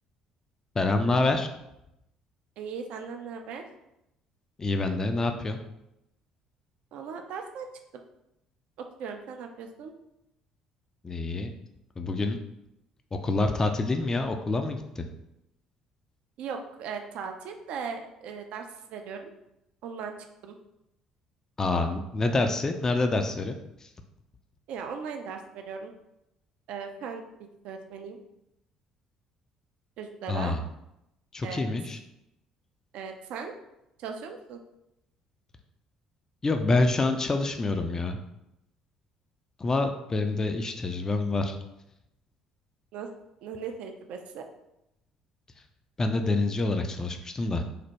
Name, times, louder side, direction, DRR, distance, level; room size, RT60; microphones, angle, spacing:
voice 1, 0.7-1.5 4.6-5.6 11.0-11.5 12.0-12.4 13.1-15.1 21.6-23.9 30.3-30.6 31.3-32.0 36.4-38.2 39.6-41.6 46.0-47.6, left 2 dB, 25° left, 6 dB, 0.3 m, -27 dB
voice 2, 2.6-3.6 6.9-7.7 9.0-9.9 16.4-19.3 19.8-20.1 20.4-20.6 24.7-25.9 26.7-27.3 27.6-28.2 30.0-30.6 31.4-31.6 32.9-33.5 34.0-34.6 42.9-43.1 43.4-44.4, right 6 dB, 60° right, 4 dB, 0.4 m, -38 dB
3.2 x 2.1 x 2.8 m, 0.86 s
figure-of-eight pair, 50°, 2 cm